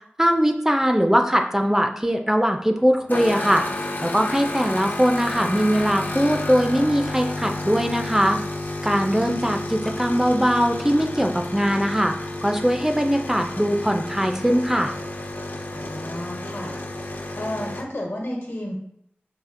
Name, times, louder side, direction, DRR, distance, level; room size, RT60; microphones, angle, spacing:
voice 1, 0.2-3.6 4.0-8.4 8.8-12.1 12.4-14.9, equal, 10° right, 4 dB, 0.3 m, -21 dB
sound 1, 3.1-17.8, left 2 dB, 50° left, 0.5 m, -31 dB
voice 2, 15.7-18.7, left 1 dB, 75° left, -1 dB, 1.1 m, -33 dB
5.6 x 2.7 x 2.5 m, 0.70 s
wide cardioid pair, 55°, 4 cm